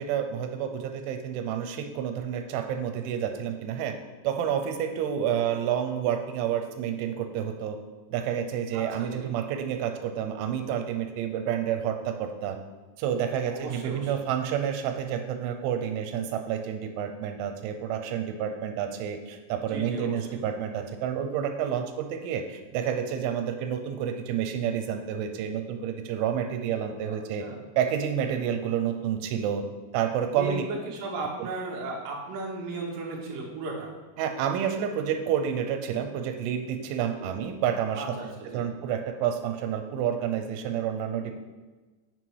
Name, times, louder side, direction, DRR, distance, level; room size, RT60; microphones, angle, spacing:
voice 1, 0.0-4.0 4.2-7.8 8.1-12.6 13.0-27.5 27.8-29.6 29.9-30.7 34.2-38.2 38.5-41.4, right 9 dB, 85° right, 6 dB, 3.1 m, -29 dB
voice 2, 8.7-9.3 13.5-14.1 19.7-20.4 27.4-27.6 30.3-33.9 37.2-37.3 37.9-38.6, right 2 dB, 60° right, -2 dB, 2.7 m, -35 dB
7.9 x 6.2 x 4.7 m, 1.3 s
omnidirectional pair, 5.4 m